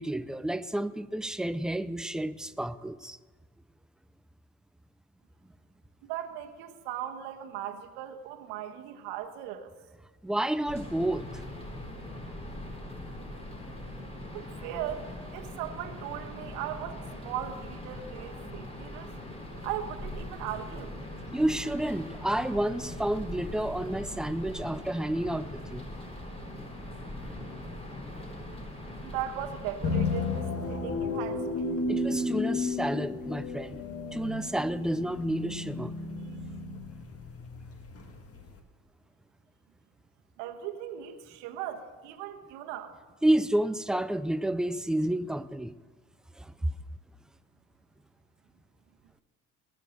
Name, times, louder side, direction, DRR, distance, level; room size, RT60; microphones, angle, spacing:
voice 1, 0.0-3.2 10.2-11.4 21.3-25.9 31.9-33.8 34.1-36.0 43.2-45.7 46.4-46.7, right 1 dB, ahead, 0.4 m, -30 dB
voice 2, 6.1-9.7 14.3-19.1 19.6-21.0 29.0-31.7 36.2-36.4 40.4-42.9, right 10 dB, 70° right, 1.3 m, -38 dB
sound 1, 10.7-30.4, left 1 dB, 15° left, 4.0 m, -41 dB
sound 2, 29.8-38.6, left 3 dB, 35° left, 1.8 m, -33 dB
19.5 x 6.7 x 6.5 m
hypercardioid pair, 75°, 41 cm